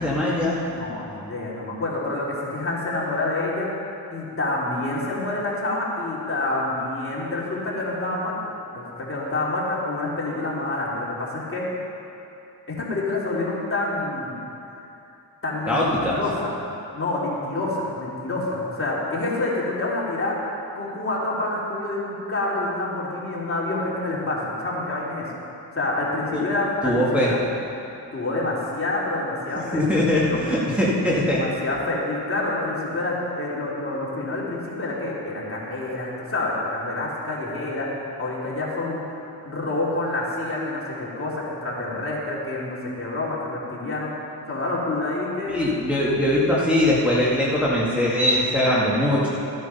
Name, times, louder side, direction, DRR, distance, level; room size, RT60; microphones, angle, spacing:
voice 1, 0.0-0.6 15.7-16.2 26.3-26.5 26.8-27.3 29.7-31.4 45.5-49.3, left 1 dB, 5° right, -7 dB, 2.2 m, -21 dB
voice 2, 0.7-3.7 4.1-8.4 8.7-11.7 12.7-14.4 15.4-16.7 16.9-20.4 20.7-25.3 25.7-27.4 28.1-29.8 30.3-30.4 31.3-39.0 39.4-45.6, left 2 dB, 30° left, -6 dB, 3.2 m, -27 dB
14.0 x 9.6 x 5.7 m, 2.7 s
cardioid pair, 90°, 41 cm